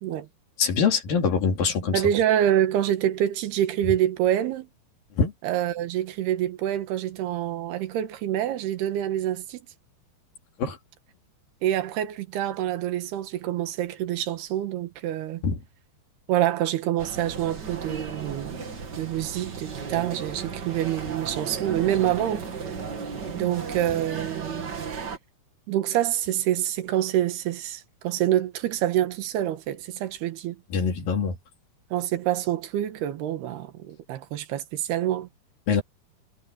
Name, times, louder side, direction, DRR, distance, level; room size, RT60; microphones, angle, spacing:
voice 1, 0.6-2.0 5.2-5.3 10.6-10.8 15.4-15.6 30.7-31.4 35.7-35.8, left 5 dB, 65° left, 4.7 m, -23 dB
voice 2, 1.9-4.7 5.4-9.6 11.6-15.4 16.3-18.6 19.0-22.5 23.4-24.6 25.7-30.6 31.9-35.3, right 12 dB, 90° right, 3.4 m, -26 dB
sound 1, 17.0-25.2, right 5 dB, 40° right, 1.7 m, -35 dB
omnidirectional pair, 4.5 m